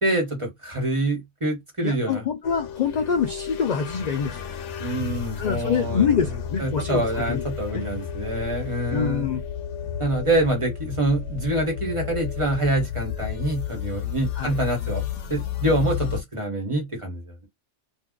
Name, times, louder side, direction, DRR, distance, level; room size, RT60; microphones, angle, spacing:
voice 1, 0.0-2.2 4.8-6.1 6.6-9.3 10.0-15.0 15.3-17.5, right 1 dB, 25° right, 1.2 m, -26 dB
voice 2, 1.8-4.5 5.4-7.4 7.7-7.8 8.9-9.4 14.4-14.6, left 6 dB, 60° left, 0.4 m, -25 dB
sound 1, 2.4-16.2, left 8 dB, 85° left, 0.9 m, -32 dB
2.7 x 2.2 x 3.5 m
omnidirectional pair, 1.2 m